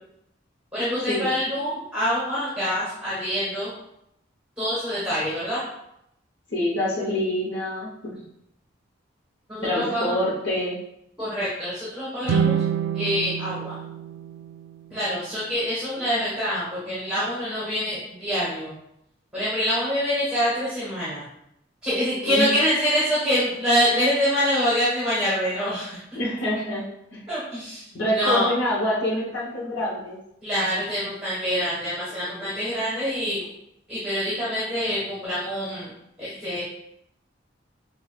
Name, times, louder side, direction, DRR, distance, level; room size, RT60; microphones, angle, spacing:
voice 1, 0.7-3.7 4.6-5.7 9.5-10.2 11.2-12.6 12.9-13.8 14.9-18.7 19.3-21.2 21.8-26.0 27.3-28.5 30.4-33.4 33.9-35.9 36.2-36.6, equal, 5° right, -11 dB, 1.4 m, -25 dB
voice 2, 6.5-8.1 9.6-10.8 22.2-22.5 26.1-26.8 27.1-27.2 27.9-30.2, left 1 dB, 65° left, -7 dB, 0.9 m, -26 dB
sound 1, 12.2-15.5, right 7 dB, 80° right, 0.3 m, -27 dB
5.8 x 2.3 x 2.4 m, 0.79 s
head